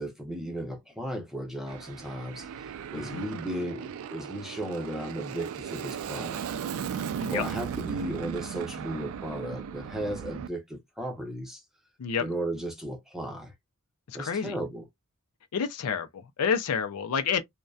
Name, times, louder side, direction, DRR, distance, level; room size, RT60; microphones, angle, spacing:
voice 1, 0.0-6.4 7.3-11.6 12.2-13.5 14.1-14.9, right 1 dB, ahead, 0.7 m, -35 dB
Aircraft, 1.7-10.5, right 7 dB, 65° right, 0.3 m, -36 dB
voice 2, 14.1-14.5 15.5-17.4, left 6 dB, 90° left, 0.4 m, -29 dB
2.6 x 2.1 x 2.3 m
head